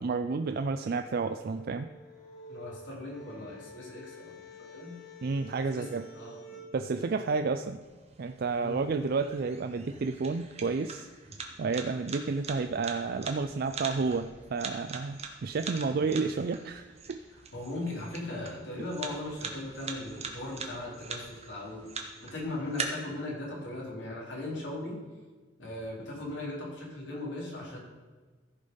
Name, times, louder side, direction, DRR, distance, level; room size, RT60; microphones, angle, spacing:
voice 1, 0.0-1.9 5.2-6.1 6.7-7.8 8.2-11.1 11.6-17.2, right 4 dB, 55° right, 7 dB, 0.4 m, -31 dB
sound 1, 0.6-6.7, left 1 dB, 70° left, 3.8 m, -50 dB
voice 2, 2.5-4.3 4.7-5.0 5.7-5.9 6.1-6.6 7.0-7.2 8.6-8.9 17.3-21.9 22.2-25.0 25.6-27.8, left 2 dB, 90° left, -4 dB, 3.9 m, -38 dB
sound 2, 7.8-22.8, right 5 dB, 35° right, 1.3 m, -43 dB
14.5 x 5.2 x 5.5 m, 1.3 s
head